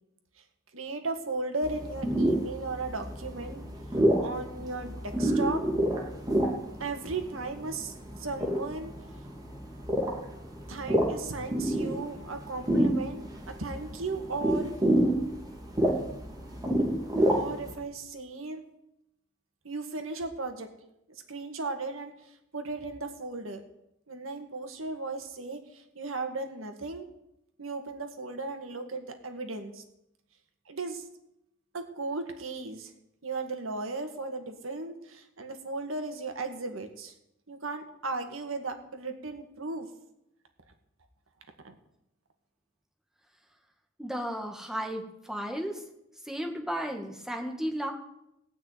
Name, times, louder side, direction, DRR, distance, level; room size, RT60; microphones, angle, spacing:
voice 1, 0.7-3.6 4.0-5.6 6.8-8.9 10.7-14.7 17.3-18.6 19.6-20.7 21.3-23.6 24.1-27.1 27.6-29.8 30.7-31.0 31.7-32.9 33.2-37.1 37.5-39.9 41.6-41.7, right 3 dB, 85° right, 6 dB, 1.9 m, -36 dB
sound 1, 1.6-17.7, right 1 dB, 20° right, 2.7 m, -29 dB
voice 2, 44.0-45.8 46.2-47.9, equal, ahead, 2 dB, 1.7 m, -34 dB
17.0 x 6.0 x 9.4 m, 0.83 s
head